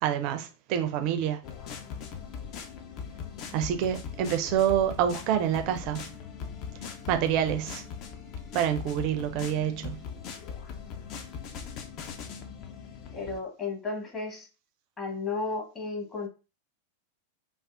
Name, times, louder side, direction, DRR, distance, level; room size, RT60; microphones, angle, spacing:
voice 1, 0.0-1.4 3.5-6.1 7.1-7.8 8.5-10.0, right 10 dB, 45° right, 0.4 m, -27 dB
sound 1, 1.4-13.4, left 6 dB, 40° left, 0.4 m, -40 dB
voice 2, 13.1-14.5 15.0-16.3, left 4 dB, 25° left, 1.0 m, -33 dB
3.3 x 2.3 x 2.3 m
figure-of-eight pair, 90°, 0 cm